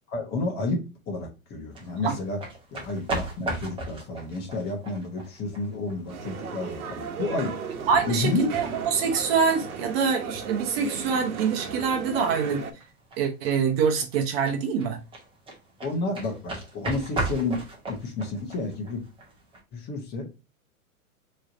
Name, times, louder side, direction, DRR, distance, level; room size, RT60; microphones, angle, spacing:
voice 1, 0.1-2.4 2.7-7.6 8.1-8.6 15.8-19.0 19.7-20.3, left 2 dB, 25° left, 1.1 m, -30 dB
sound 1, 1.7-19.6, right 2 dB, 10° right, 1.1 m, -38 dB
sound 2, 6.1-12.7, right 5 dB, 75° right, 1.1 m, -36 dB
voice 2, 7.9-12.6 13.2-15.0, right 6 dB, 45° right, 0.9 m, -25 dB
4.6 x 3.2 x 2.6 m
hypercardioid pair, 140°, 43 cm